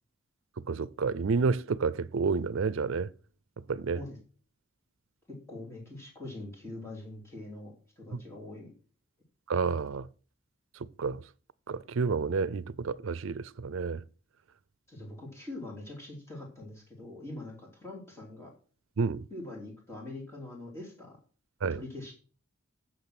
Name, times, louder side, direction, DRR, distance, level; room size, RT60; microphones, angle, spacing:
voice 1, 0.7-3.1 3.7-4.0 9.5-10.1 11.0-11.2 11.7-14.0 19.0-19.2 21.6-21.8, right 5 dB, 75° right, 0.5 m, -30 dB
voice 2, 5.3-8.7 14.9-18.5 19.3-21.2 21.6-22.1, left 2 dB, 15° left, 3.0 m, -43 dB
8.9 x 6.6 x 5.9 m
head